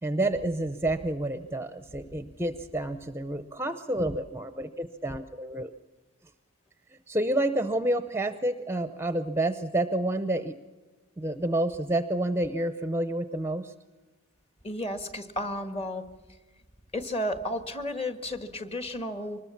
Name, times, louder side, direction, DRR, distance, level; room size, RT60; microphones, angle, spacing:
voice 1, 0.0-5.7 7.1-10.6 11.2-13.7, right 1 dB, 10° right, 11 dB, 0.6 m, -29 dB
voice 2, 14.6-16.0 16.9-19.4, left 1 dB, 30° left, 9 dB, 1.7 m, -33 dB
24.5 x 20.5 x 7.2 m, 1.2 s
head